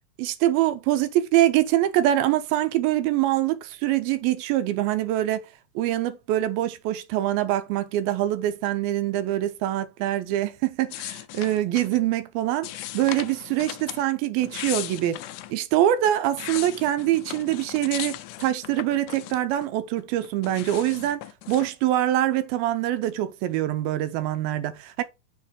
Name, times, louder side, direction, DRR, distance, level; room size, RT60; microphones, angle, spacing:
voice 1, 0.2-5.4 5.8-12.7 12.9-15.2 15.5-25.0, right 13 dB, 90° right, 2.6 m, -24 dB
sound 1, 10.9-12.0 12.6-14.0 14.4-15.5 16.1-19.7 20.0-21.7, left 15 dB, 85° left, 1.8 m, -37 dB
7.0 x 3.6 x 6.2 m
omnidirectional pair, 4.2 m